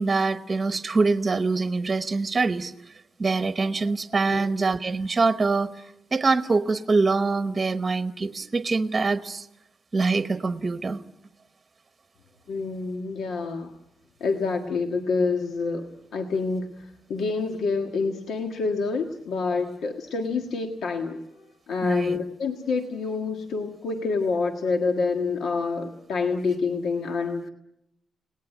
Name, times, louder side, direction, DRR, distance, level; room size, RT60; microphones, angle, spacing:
voice 1, 0.0-2.7 3.2-5.7 6.1-9.5 9.9-11.0 21.8-22.2, right 3 dB, 25° right, 10 dB, 1.0 m, -24 dB
voice 2, 12.5-13.7 14.2-27.5, left 4 dB, 80° left, 4 dB, 1.6 m, -27 dB
29.5 x 19.0 x 9.2 m, 0.86 s
wide cardioid pair, 175°, 0 cm